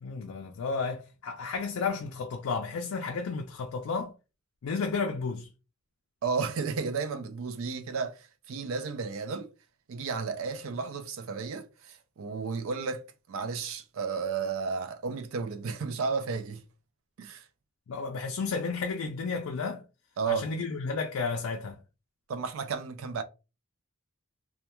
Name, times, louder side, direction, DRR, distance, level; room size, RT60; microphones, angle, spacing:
voice 1, 0.0-4.1 4.6-5.5 17.9-19.8 20.3-21.8, left 4 dB, 70° left, 0.4 m, -32 dB
voice 2, 6.2-9.5 9.9-13.0 13.3-16.6 17.2-17.5 20.2-20.5 22.3-23.2, right 5 dB, 65° right, 0.4 m, -33 dB
2.2 x 2.2 x 2.9 m
head